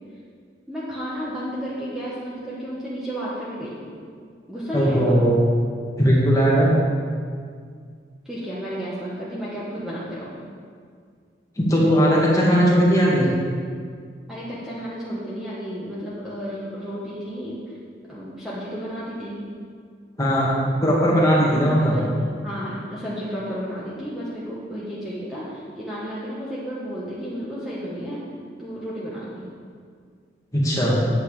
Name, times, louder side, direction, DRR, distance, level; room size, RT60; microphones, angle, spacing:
voice 1, 0.7-3.9 4.5-5.2 8.2-10.4 12.6-12.7 14.3-17.8 18.1-19.4 21.5-28.2 28.6-29.5, equal, ahead, -9 dB, 1.5 m, -32 dB
voice 2, 4.7-5.4 6.0-6.7 11.6-13.3 20.2-22.0 30.5-30.9, equal, 20° left, -5 dB, 2.0 m, -18 dB
9.4 x 8.4 x 5.0 m, 2.1 s
head